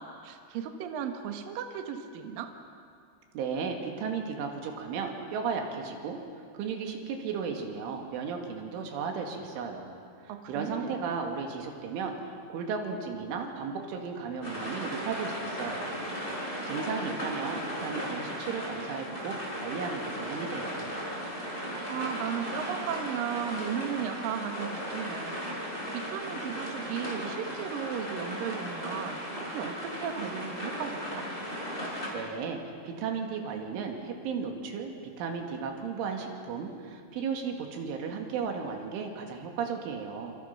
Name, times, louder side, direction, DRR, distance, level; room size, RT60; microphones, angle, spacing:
voice 1, 0.0-2.5 10.3-11.0 21.9-25.4 25.6-31.3, right 8 dB, 60° right, 5 dB, 2.6 m, -36 dB
voice 2, 3.3-6.2 6.5-16.1 16.7-20.9 32.1-40.4, right 5 dB, 85° right, 3 dB, 4.7 m, -35 dB
sound 1, 14.4-32.1, equal, 10° left, 4.8 m, -36 dB
28.0 x 26.5 x 5.9 m, 2.4 s
omnidirectional pair, 5.4 m